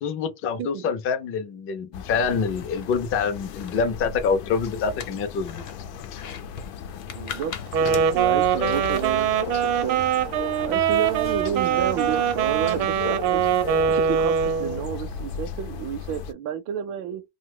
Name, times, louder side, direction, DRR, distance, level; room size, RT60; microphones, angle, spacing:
voice 1, 0.0-5.6, left 5 dB, 30° left, 0.4 m, -26 dB
voice 2, 0.6-0.9 7.1-10.1 10.6-13.4 13.9-17.2, right 9 dB, 50° right, 0.5 m, -31 dB
sound 1, 1.9-16.3, left 7 dB, 80° left, 0.7 m, -36 dB
sound 2, 2.3-14.4, left 7 dB, 50° left, 0.9 m, -43 dB
Wind instrument woodwind instrument, 7.7-14.8, right 8 dB, 75° right, 0.8 m, -23 dB
2.7 x 2.2 x 3.6 m
cardioid pair, 180°, 43 cm